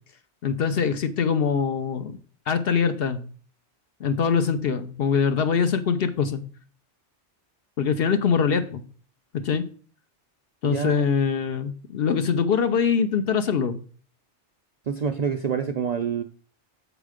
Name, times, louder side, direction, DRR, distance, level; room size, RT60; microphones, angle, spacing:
voice 1, 0.4-2.2 2.5-3.2 4.0-6.4 7.8-8.8 9.3-9.7 10.6-13.8, left 6 dB, 60° left, 9 dB, 0.8 m, -23 dB
voice 2, 10.6-11.0 14.9-16.2, right 6 dB, 55° right, 6 dB, 0.4 m, -27 dB
7.4 x 5.0 x 4.9 m, 0.42 s
omnidirectional pair, 1.2 m